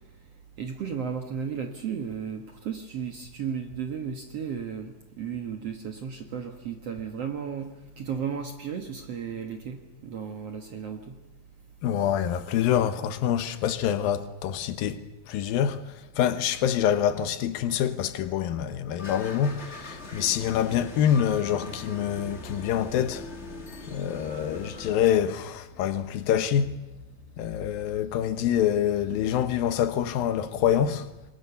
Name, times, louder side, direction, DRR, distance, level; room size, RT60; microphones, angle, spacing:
voice 1, 0.6-11.2, right 7 dB, 55° right, 2.1 m, -34 dB
voice 2, 11.8-15.0 15.3-23.3 23.9-26.8 27.4-31.1, left 9 dB, 90° left, 2.9 m, -26 dB
sound 1, 19.0-25.1, left 2 dB, 30° left, 1.3 m, -41 dB
28.0 x 21.5 x 7.0 m
omnidirectional pair, 4.0 m